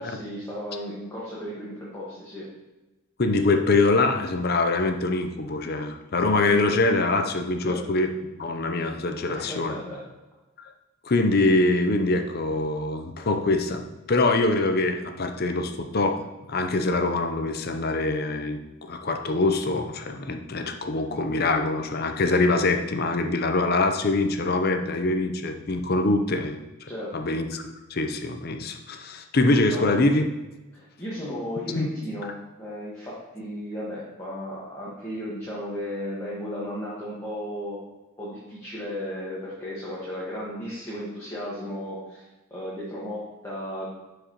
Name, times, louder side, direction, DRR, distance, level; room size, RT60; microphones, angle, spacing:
voice 1, 0.0-2.5 7.6-7.8 9.3-10.0 26.9-27.1 29.7-30.2 30.7-32.3 32.6-37.8 38.2-42.2 42.5-43.9, equal, 15° left, -8 dB, 1.4 m, -35 dB
voice 2, 3.2-8.1 8.4-9.7 11.0-16.2 16.5-26.6 27.1-30.3 31.8-31.9, left 2 dB, 45° left, 6 dB, 0.6 m, -24 dB
11.5 x 4.9 x 3.0 m, 1.1 s
head